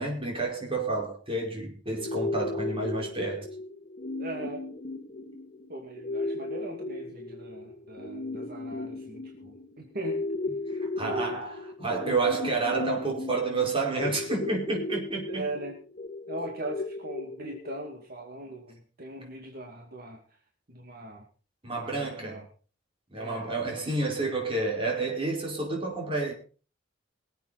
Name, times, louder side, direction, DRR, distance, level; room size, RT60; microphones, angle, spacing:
voice 1, 0.0-3.5 10.8-15.4 21.6-22.4 23.1-26.3, right 3 dB, 30° right, 5.0 m, -30 dB
sound 1, 2.0-18.0, left 2 dB, 45° left, 2.3 m, -36 dB
voice 2, 4.2-4.6 5.7-10.2 11.0-11.4 15.3-15.8 16.3-20.2 20.7-21.2 21.7-22.4 23.1-23.5, right 2 dB, 55° right, 2.5 m, -39 dB
23.5 x 8.3 x 4.2 m
head